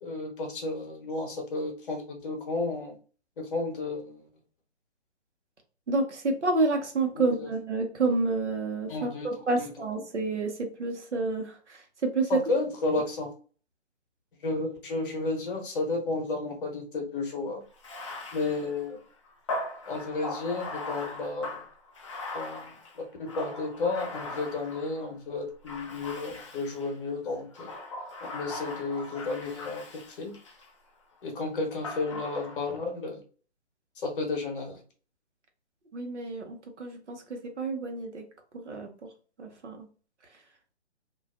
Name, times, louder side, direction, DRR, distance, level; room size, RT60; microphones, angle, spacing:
voice 1, 0.0-3.0 3.4-4.3 7.1-7.5 8.9-9.7 12.3-13.3 14.4-17.6 18.3-19.0 19.9-21.6 22.3-27.7 28.2-30.4 31.2-33.2 34.0-34.8, left 3 dB, 50° left, 2 dB, 1.0 m, -32 dB
voice 2, 5.9-12.4 35.9-38.2 38.5-39.1 39.4-39.9, right 3 dB, 85° right, 4 dB, 0.9 m, -29 dB
Bathtub (filling or washing), 17.7-25.1 25.6-26.9 27.5-30.7 31.8-32.8, left 2 dB, 30° left, 0.4 m, -39 dB
2.4 x 2.2 x 2.3 m, 0.39 s
figure-of-eight pair, 140°, 34 cm